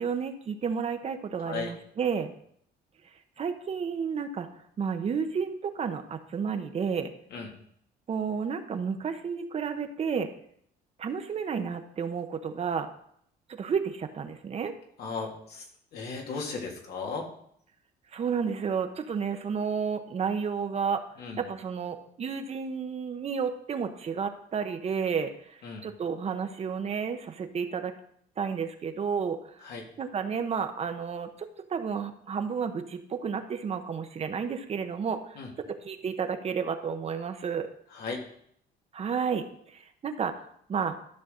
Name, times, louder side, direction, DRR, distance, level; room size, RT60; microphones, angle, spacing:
voice 1, 0.0-2.3 3.4-4.5 4.8-7.1 8.1-10.3 11.0-12.9 13.5-14.7 18.1-21.0 21.4-27.9 28.4-29.4 30.0-35.2 35.6-37.7 38.9-41.0, right 6 dB, 40° right, 7 dB, 0.9 m, -31 dB
voice 2, 1.4-1.7 7.3-7.5 15.0-15.7 15.9-17.3 21.2-21.4 25.6-25.8 29.6-29.8 35.4-35.5 37.9-38.2, left 4 dB, 75° left, 1 dB, 2.3 m, -36 dB
13.0 x 5.8 x 3.8 m, 0.67 s
cardioid pair, 110°, 17 cm